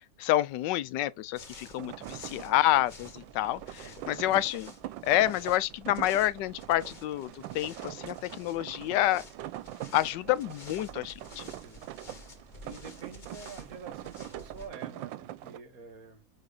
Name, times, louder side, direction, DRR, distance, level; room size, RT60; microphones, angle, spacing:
voice 1, 0.2-4.7 5.0-9.2 9.9-11.4, left 14 dB, 75° left, 1.2 m, -28 dB
sound 1, 1.3-14.7, left 1 dB, 25° left, 1.4 m, -51 dB
sound 2, 1.8-15.6, right 14 dB, 90° right, 1.3 m, -43 dB
voice 2, 3.8-4.4 11.5-11.9 12.6-16.2, right 4 dB, 50° right, 1.8 m, -48 dB
9.0 x 3.3 x 3.9 m
omnidirectional pair, 2.0 m